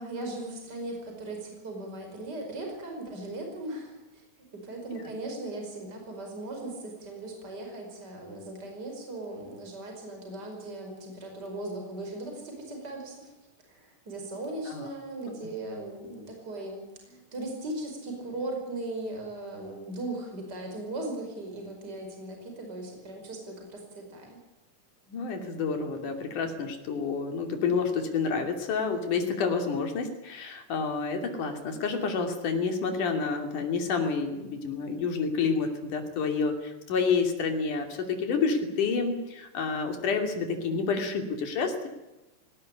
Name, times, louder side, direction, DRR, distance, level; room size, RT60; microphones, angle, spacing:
voice 1, 0.0-4.2 4.6-13.3 13.7-24.4, right 2 dB, 30° right, 2 dB, 5.7 m, -38 dB
voice 2, 25.1-41.9, left 5 dB, 80° left, 4 dB, 4.4 m, -29 dB
19.0 x 18.0 x 9.9 m, 1.0 s
omnidirectional pair, 3.6 m